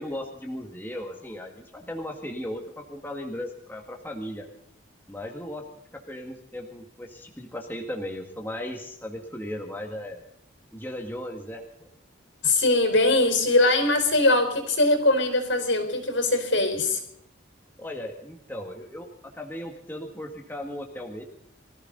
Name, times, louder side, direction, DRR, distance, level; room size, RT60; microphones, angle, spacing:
voice 1, 0.0-4.5 5.1-5.6 5.9-10.2 10.7-11.9 17.8-19.1 19.3-21.2, left 1 dB, 10° left, 2 dB, 1.8 m, -36 dB
voice 2, 12.4-17.0, left 2 dB, 70° left, 6 dB, 4.5 m, -21 dB
24.0 x 15.0 x 3.9 m, 0.74 s
head